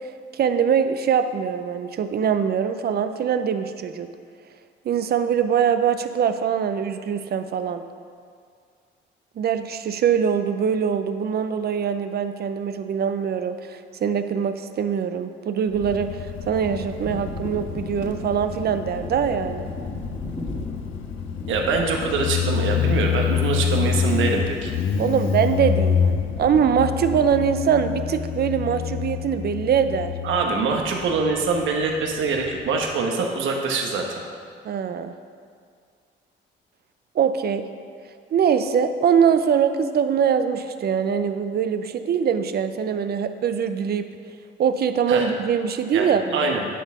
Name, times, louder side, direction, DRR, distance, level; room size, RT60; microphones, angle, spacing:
voice 1, 0.3-4.1 4.8-7.8 9.4-16.2 16.5-19.7 25.0-30.1 34.6-35.1 37.2-37.7 38.3-44.1 44.6-46.6, right 7 dB, 55° right, 9 dB, 0.5 m, -23 dB
Motorcycle, 15.7-32.9, left 7 dB, 80° left, 0.6 m, -27 dB
Thunder, 16.6-26.3 26.7-27.8, left 1 dB, 25° left, 1.2 m, -39 dB
voice 2, 21.5-24.7 30.2-34.2 45.1-45.3 45.9-46.6, right 4 dB, 80° right, 2 dB, 1.1 m, -24 dB
10.0 x 4.2 x 5.4 m, 2.2 s
cardioid pair, 90°, 20 cm